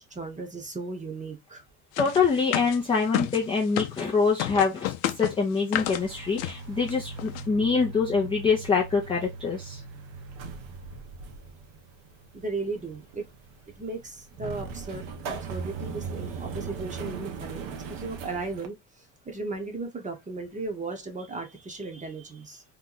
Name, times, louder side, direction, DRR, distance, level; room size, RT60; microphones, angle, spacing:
voice 1, 0.0-1.6 12.3-13.2 13.8-18.8 19.3-22.6, right 3 dB, 15° right, 0.7 m, -36 dB
sound 1, 2.0-4.1 4.4-6.0 6.4-6.6 6.9-7.0 7.2-7.4, left 14 dB, 85° left, 0.6 m, -30 dB
voice 2, 2.0-9.8, left 5 dB, 15° left, 0.3 m, -25 dB
sound 2, 5.7-18.7, right 5 dB, 65° right, 0.9 m, -39 dB
2.9 x 2.2 x 3.7 m
cardioid pair, 125°, 50 cm